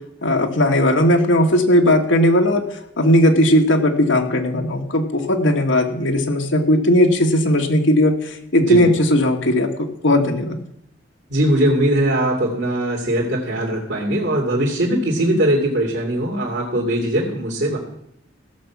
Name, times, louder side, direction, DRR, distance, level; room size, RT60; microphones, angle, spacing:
voice 1, 0.2-2.6 3.0-8.1 8.5-10.6, left 1 dB, 80° left, 4 dB, 1.7 m, -17 dB
voice 2, 11.3-17.8, right 1 dB, 65° right, -3 dB, 2.7 m, -20 dB
16.5 x 6.9 x 6.1 m, 0.74 s
head